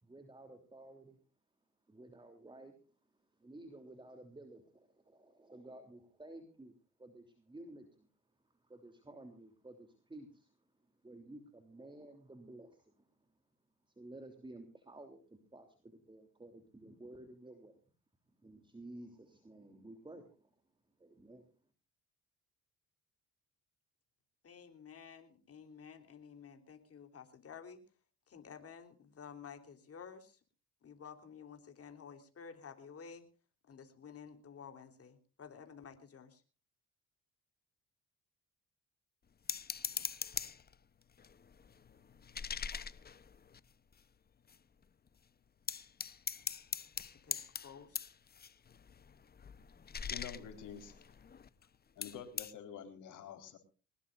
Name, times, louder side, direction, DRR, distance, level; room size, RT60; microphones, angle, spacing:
voice 1, 0.0-1.2 1.9-2.8 3.4-8.1 8.6-10.5 11.0-13.1 14.0-17.8 18.4-20.5 21.0-21.4, right 2 dB, 15° right, 7 dB, 3.1 m, -53 dB
voice 2, 24.4-28.0 28.3-30.4 30.8-33.3 33.6-36.4 47.2-48.1, left 6 dB, 50° left, 6 dB, 3.5 m, -52 dB
sound 1, 39.5-40.8 41.2-44.0 44.5-44.6 44.8-45.2 45.7-51.7 52.0-52.5, left 6 dB, 30° left, 0.9 m, -42 dB
voice 3, 50.1-51.2 52.0-53.6, left 8 dB, 80° left, 5 dB, 4.3 m, -48 dB
22.5 x 19.5 x 2.5 m, 0.36 s
cardioid pair, 90°, 30 cm